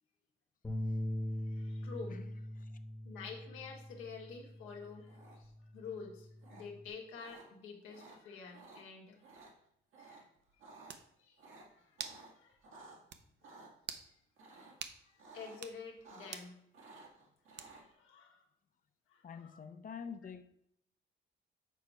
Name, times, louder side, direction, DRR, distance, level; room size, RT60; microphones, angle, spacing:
sound 1, 0.6-6.9, left 1 dB, 10° left, 1.0 m, -42 dB
voice 1, 1.5-2.3 3.0-9.2 10.0-10.3 10.8-11.4 11.7-12.0 12.4-12.6 14.1-14.2 15.0-16.6 17.7-18.4 19.1-19.6, left 5 dB, 90° left, 1.5 m, -49 dB
sound 2, 5.1-5.6 6.4-6.6 7.2-7.4 7.9-8.2 8.5-8.8 9.2-9.5 9.9-10.2 10.5-10.9 11.4-13.0 13.4-13.7 14.4-14.8 15.2-15.6 15.9-16.5 16.7-17.8, right 3 dB, 80° right, 1.8 m, -55 dB
sound 3, 10.4-10.5 10.9-11.1 12.0-12.2 12.6-12.7 13.1-13.2 13.8-14.1 14.8-15.0 15.5-15.8 16.3-16.5 17.6-17.9, right 8 dB, 60° right, 0.6 m, -45 dB
voice 2, 19.2-20.4, left 6 dB, 45° left, 0.6 m, -46 dB
7.0 x 4.3 x 4.7 m
cardioid pair, 90°, 20 cm